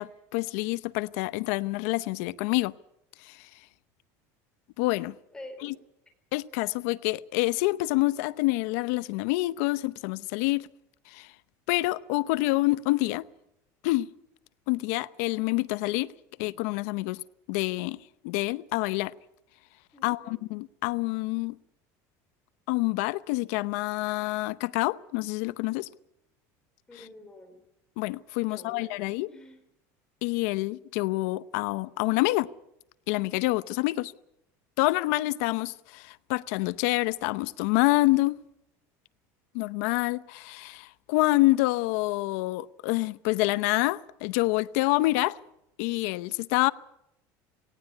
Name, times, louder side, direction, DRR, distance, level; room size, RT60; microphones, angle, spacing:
voice 1, 0.0-2.7 3.2-3.4 4.8-5.1 5.6-5.7 6.3-10.7 11.1-11.3 11.7-13.3 13.8-14.1 14.7-16.1 16.4-17.2 17.5-18.0 18.2-19.1 20.0-21.6 22.7-25.9 26.9-27.1 28.0-29.3 30.2-32.5 33.1-34.1 34.8-38.4 39.5-45.4 45.8-46.7, left 20 dB, 75° left, 0.8 m, -27 dB
voice 2, 5.3-5.7 19.9-20.4 26.9-27.6 28.4-28.9 29.3-29.6, left 1 dB, 10° left, 4.1 m, -46 dB
18.5 x 18.0 x 9.7 m
cardioid pair, 155°, 8 cm